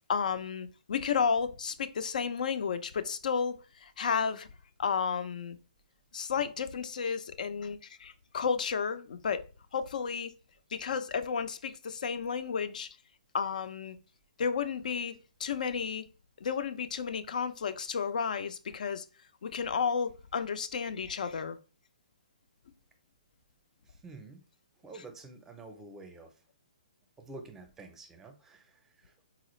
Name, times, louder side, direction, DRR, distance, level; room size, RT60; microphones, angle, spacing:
voice 1, 0.1-4.5 4.8-5.6 6.1-9.4 9.7-10.3 10.7-12.9 13.3-14.0 14.4-15.1 15.4-16.1 16.4-19.0 19.4-21.6, left 6 dB, 70° left, 0.4 m, -32 dB
voice 2, 23.8-24.4 24.8-26.3 27.2-29.1, right 3 dB, 10° right, 0.5 m, -49 dB
3.9 x 2.4 x 3.0 m
hypercardioid pair, 140°, 4 cm